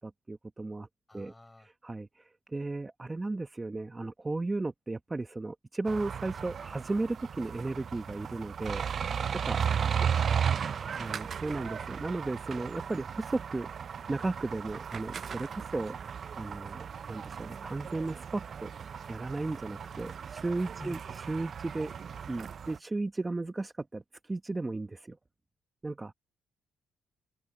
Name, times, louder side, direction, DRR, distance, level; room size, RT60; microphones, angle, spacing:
voice 1, 0.0-0.9 1.1-1.3 1.6-9.1 9.4-9.8 10.7-13.7 14.1-18.7 19.1-21.0 21.3-21.9 22.3-25.2 25.8-26.1, right 2 dB, 20° right, 1.1 m, -35 dB
voice 2, 1.1-1.7 20.8-21.0, left 2 dB, 15° left, 6.9 m, -51 dB
sound 1, 5.8-22.8, right 7 dB, 50° right, 0.4 m, -35 dB
open air
cardioid pair, 90°, 0 cm